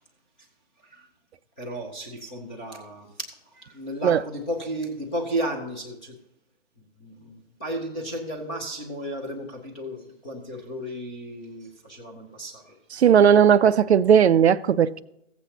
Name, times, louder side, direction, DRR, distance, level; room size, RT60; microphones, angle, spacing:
voice 1, 1.6-6.1 6.8-12.8, right 1 dB, 5° left, 0.4 m, -34 dB
voice 2, 13.0-15.0, right 8 dB, 60° right, 0.5 m, -17 dB
15.5 x 8.2 x 2.9 m
hypercardioid pair, 145°, 38 cm